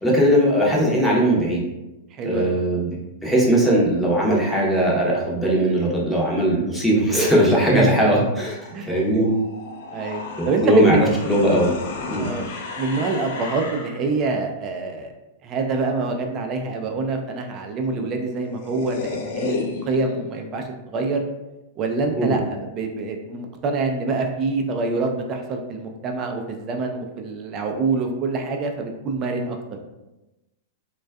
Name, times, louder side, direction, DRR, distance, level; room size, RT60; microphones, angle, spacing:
voice 1, 0.0-1.6 2.2-2.9 3.2-8.6 8.9-9.3 10.4-11.7 12.1-12.3 22.1-22.4, right 1 dB, ahead, -5 dB, 0.7 m, -19 dB
voice 2, 2.1-2.8 7.7-8.3 8.7-9.2 9.9-11.1 12.2-12.5 12.8-15.1 15.4-20.6 20.9-21.2 21.8-29.6, right 3 dB, 35° right, 3 dB, 0.4 m, -26 dB
sound 1, 8.4-14.1 18.0-18.1 18.3-20.3, left 4 dB, 60° left, 0.3 m, -33 dB
2.4 x 2.2 x 2.3 m, 1.0 s
hypercardioid pair, 110°, 0 cm